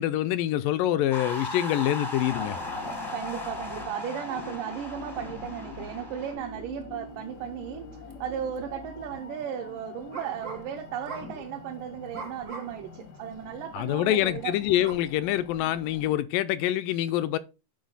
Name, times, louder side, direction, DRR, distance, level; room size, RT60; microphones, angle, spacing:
voice 1, 0.0-2.6 13.7-17.4, left 13 dB, 80° left, 2.0 m, -26 dB
sound 1, 1.1-6.3, left 1 dB, 30° left, 0.4 m, -37 dB
sound 2, 2.2-16.2, left 4 dB, 65° left, 0.9 m, -45 dB
voice 2, 2.8-14.5, right 9 dB, 75° right, 2.2 m, -36 dB
sound 3, 8.1-8.2 8.6-8.9 10.1-10.7 11.0-11.4 12.1-12.9 13.3-13.4 14.8-14.9, right 3 dB, 55° right, 0.8 m, -41 dB
10.5 x 5.2 x 4.0 m
omnidirectional pair, 4.3 m